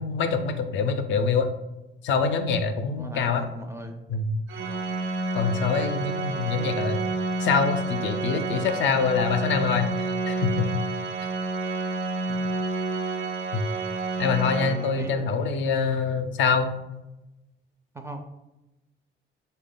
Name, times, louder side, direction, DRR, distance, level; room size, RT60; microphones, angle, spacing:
voice 1, 0.0-1.5 2.0-3.4 4.1-4.4 5.3-7.0 7.4-10.7 13.5-13.6 14.2-16.7, left 5 dB, 70° left, 7 dB, 0.4 m, -25 dB
voice 2, 2.9-4.0 14.2-15.5 17.9-18.2, right 1 dB, 15° right, 5 dB, 0.4 m, -39 dB
Organ, 4.5-15.3, right 3 dB, 85° right, 0.4 m, -29 dB
3.3 x 2.2 x 3.7 m, 0.97 s
cardioid pair, 90°, 20 cm